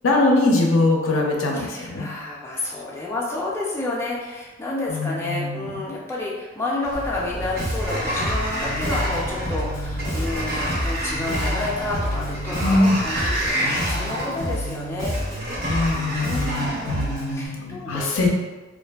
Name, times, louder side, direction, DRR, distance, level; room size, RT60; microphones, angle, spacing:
voice 1, 0.0-2.1 4.9-5.9 12.6-13.0 15.7-18.3, left 2 dB, 75° left, 1 dB, 0.4 m, -22 dB
voice 2, 1.5-15.1 16.2-18.2, left 2 dB, 15° left, -5 dB, 0.3 m, -30 dB
Sliding door, 6.8-17.3, equal, 50° right, 0.6 m, -30 dB
sound 1, 6.9-13.5, equal, 65° right, 1.1 m, -35 dB
Bass guitar, 7.6-17.5, equal, 80° right, 1.4 m, -30 dB
2.5 x 2.5 x 2.2 m, 1.2 s
head